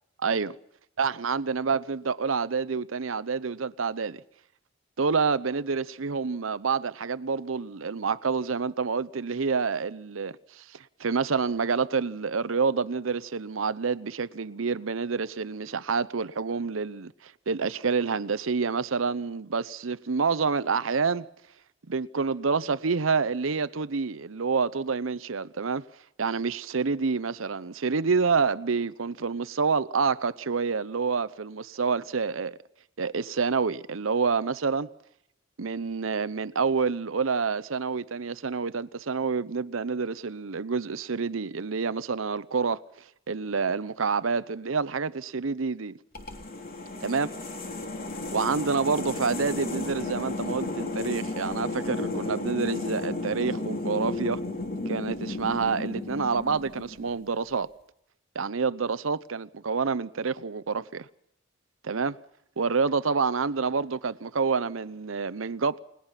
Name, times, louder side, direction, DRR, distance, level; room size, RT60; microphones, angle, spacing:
voice 1, 0.2-0.5 1.0-4.2 5.0-21.3 21.9-25.8 26.2-32.6 33.0-34.9 35.6-42.8 43.3-46.0 47.0-47.3 48.3-54.4 54.9-57.7 58.3-61.1 61.8-62.2 62.6-65.8, right 5 dB, 90° right, 0.8 m, -28 dB
sound 1, 46.2-57.2, left 2 dB, 50° left, 3.1 m, -33 dB
29.5 x 19.0 x 5.8 m
head